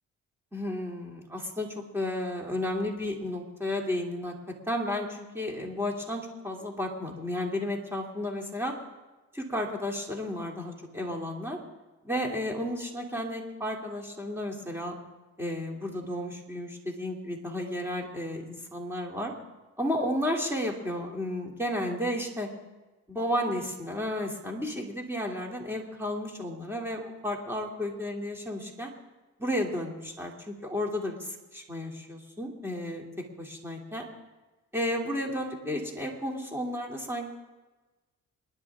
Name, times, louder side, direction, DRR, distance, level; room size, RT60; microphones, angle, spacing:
voice 1, 0.5-4.3 4.7-8.7 9.3-11.6 12.0-15.0 15.4-19.3 19.8-22.5 23.1-28.9 29.4-31.1 31.5-33.1 33.4-34.0 34.7-37.3, left 1 dB, 10° right, 0 dB, 3.0 m, -32 dB
28.0 x 11.0 x 3.7 m, 1.2 s
cardioid pair, 90°, 30 cm